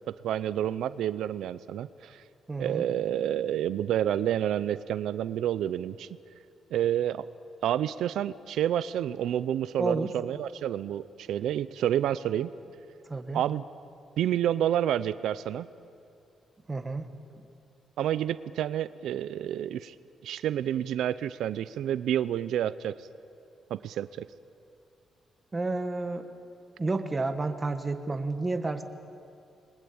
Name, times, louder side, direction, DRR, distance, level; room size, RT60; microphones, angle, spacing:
voice 1, 0.2-2.2 2.6-6.1 6.7-7.3 7.6-12.5 13.3-13.6 14.2-15.7 18.0-19.9 20.2-22.9 23.7-24.3, right 11 dB, 85° right, 15 dB, 0.6 m, -29 dB
voice 2, 2.5-2.8 9.8-10.1 13.1-13.4 16.7-17.1 25.5-26.3 26.8-28.8, right 3 dB, 20° right, 7 dB, 1.4 m, -30 dB
29.0 x 21.5 x 8.8 m, 2.5 s
cardioid pair, 165°, 0 cm